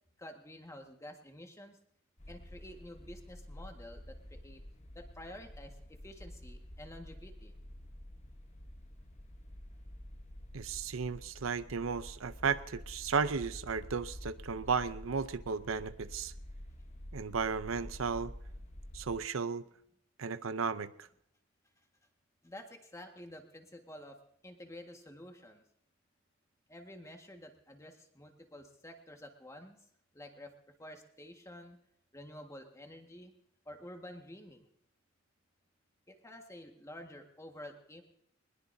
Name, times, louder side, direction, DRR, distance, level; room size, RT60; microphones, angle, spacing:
voice 1, 0.2-1.8 2.3-4.6 4.9-7.5 12.7-12.8 22.4-25.6 26.7-29.8 30.1-30.5 30.8-31.8 32.1-33.3 33.6-34.7 36.1-38.0, left 1 dB, 15° left, 4 dB, 1.7 m, -50 dB
sound 1, 2.2-19.1, left 1 dB, 35° left, 1.2 m, -49 dB
voice 2, 10.5-16.3 17.1-18.3 18.9-19.7 20.2-21.1, right 5 dB, 90° right, 13 dB, 0.7 m, -34 dB
21.5 x 20.5 x 2.7 m, 0.73 s
head